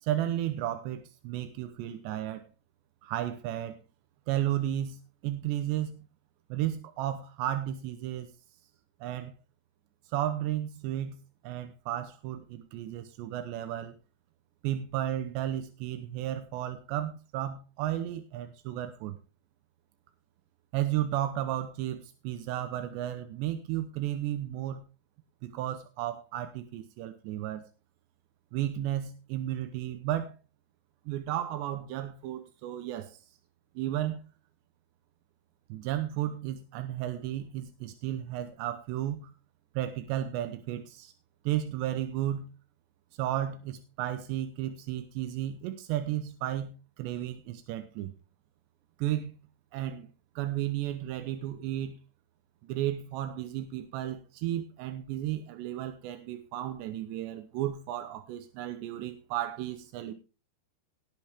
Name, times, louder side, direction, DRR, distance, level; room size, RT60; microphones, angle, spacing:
voice 1, 0.0-2.5 3.0-3.8 4.3-5.9 6.5-8.3 9.0-9.3 10.1-11.2 11.4-13.9 14.6-19.2 20.7-24.8 25.4-27.6 28.5-30.3 31.1-33.2 33.8-34.2 35.7-39.3 39.7-41.1 41.4-42.5 43.2-48.1 49.0-49.3 49.7-50.1 50.4-52.0 52.6-60.1, right 12 dB, 90° right, 9 dB, 3.2 m, -33 dB
18.0 x 9.1 x 3.6 m, 0.32 s
omnidirectional pair, 4.9 m